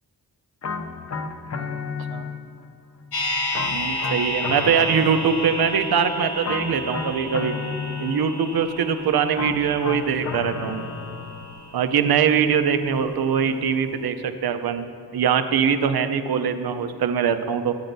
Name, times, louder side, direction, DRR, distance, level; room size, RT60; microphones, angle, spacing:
sound 1, 0.6-2.7 3.5-5.9 6.4-8.5 9.3-11.7, left 5 dB, 40° left, 0.5 m, -33 dB
sound 2, 3.1-13.2 13.4-13.5, left 1 dB, 80° left, 1.7 m, -32 dB
voice 1, 3.7-7.5 8.0-10.8 11.7-14.9 15.1-17.7, right 7 dB, 70° right, 9 dB, 0.6 m, -22 dB
11.5 x 8.6 x 2.6 m, 2.5 s
wide cardioid pair, 90°, 39 cm